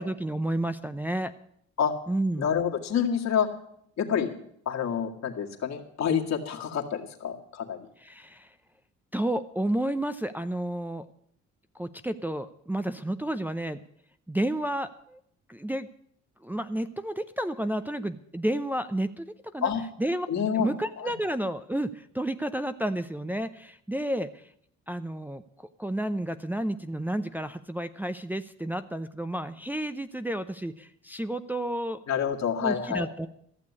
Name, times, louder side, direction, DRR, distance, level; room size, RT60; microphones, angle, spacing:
voice 1, 0.0-1.3 2.1-2.5 8.0-8.5 9.1-11.0 11.8-13.8 14.3-15.2 15.5-15.9 16.4-19.3 19.5-19.7 20.0-20.3 20.5-24.5 24.9-25.4 25.8-32.0 32.6-33.3, right 1 dB, 5° right, 8 dB, 0.6 m, -31 dB
voice 2, 2.4-3.5 4.0-4.3 4.7-7.8 19.6-19.8 20.3-20.7 21.0-21.1 32.1-33.1, left 8 dB, 60° left, 2 dB, 2.0 m, -28 dB
14.5 x 6.8 x 9.6 m, 0.70 s
cardioid pair, 90°, 30 cm